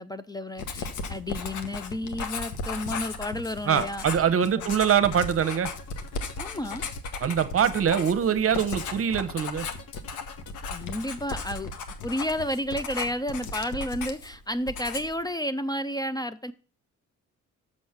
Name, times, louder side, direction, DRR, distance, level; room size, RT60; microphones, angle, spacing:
voice 1, 0.0-4.3 4.6-4.8 6.4-6.8 10.7-11.7 12.0-16.5, left 1 dB, 15° left, 0.4 m, -31 dB
Writing, 0.6-14.4 14.7-15.2, left 4 dB, 80° left, 1.2 m, -36 dB
voice 2, 3.6-5.7 7.2-9.7, right 8 dB, 50° right, 0.9 m, -23 dB
sound 1, 5.4-11.3, left 6 dB, 55° left, 1.1 m, -49 dB
6.5 x 6.3 x 5.8 m
cardioid pair, 90°, 30 cm